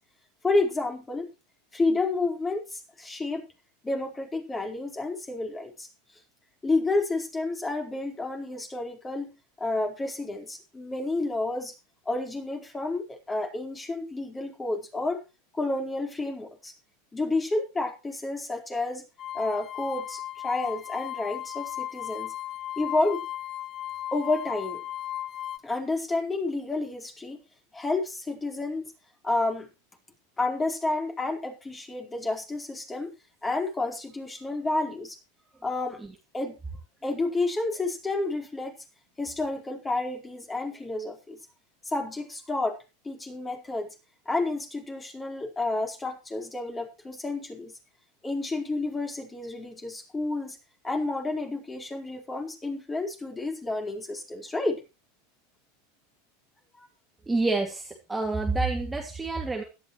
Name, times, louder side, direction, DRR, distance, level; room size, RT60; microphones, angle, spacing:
voice 1, 0.4-1.3 1.7-3.4 3.8-5.9 6.6-9.3 9.6-11.7 12.1-15.2 15.5-16.7 17.1-19.0 19.3-22.3 22.8-23.2 24.1-24.8 25.6-27.4 27.7-28.9 29.2-29.7 30.4-33.1 33.4-35.2 35.6-36.0 36.3-36.5 37.0-38.7 39.2-41.4 41.8-42.8 43.0-43.9 44.3-47.7 48.2-50.6 50.8-54.8, left 2 dB, 15° left, 3 dB, 4.4 m, -30 dB
sound 1, 19.2-25.6, left 12 dB, 35° left, 0.7 m, -36 dB
voice 2, 57.3-59.6, right 3 dB, 10° right, 2 dB, 2.3 m, -28 dB
17.0 x 12.5 x 3.2 m, 0.29 s
hypercardioid pair, 90°, 0 cm